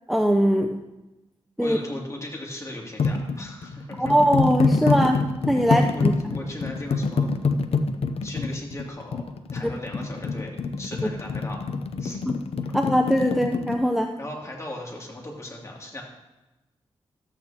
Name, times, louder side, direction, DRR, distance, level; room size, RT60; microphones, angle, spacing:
voice 1, 0.1-0.8 1.6-1.8 4.0-6.1 9.6-9.8 12.3-12.4 12.7-14.1, equal, ahead, 4 dB, 0.7 m, -21 dB
voice 2, 1.6-4.1 5.6-6.1 6.3-7.3 8.2-9.2 9.5-10.5 10.8-11.6 12.0-12.2 14.2-16.0, left 1 dB, 30° left, -1 dB, 2.7 m, -37 dB
sound 1, 3.0-13.8, left 4 dB, 70° left, 0.7 m, -26 dB
13.0 x 8.6 x 2.9 m, 1.0 s
cardioid pair, 60°, 10 cm